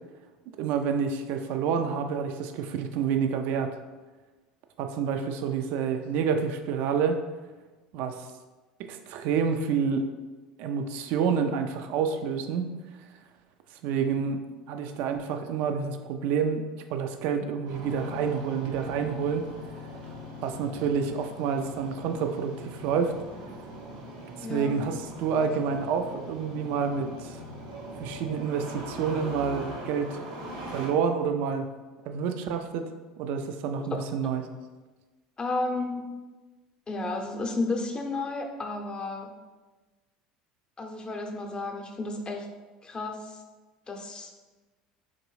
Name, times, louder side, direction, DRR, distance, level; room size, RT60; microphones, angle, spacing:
voice 1, 0.6-3.7 4.8-7.2 7.9-8.3 8.9-10.0 10.6-12.7 13.8-14.4 14.7-16.6 16.9-19.5 20.4-23.1 24.4-27.4 28.0-30.2 30.7-31.7 32.1-32.9 33.2-34.4, right 6 dB, 65° right, 6 dB, 0.3 m, -28 dB
Engine starting, 17.7-30.9, equal, 85° right, 0.8 m, -41 dB
voice 2, 24.4-24.8 35.4-36.1 36.9-39.3 40.8-42.5 42.8-43.4 43.9-44.3, left 2 dB, 25° left, 3 dB, 0.6 m, -32 dB
3.7 x 2.6 x 3.1 m, 1.2 s
hypercardioid pair, 80°, 3 cm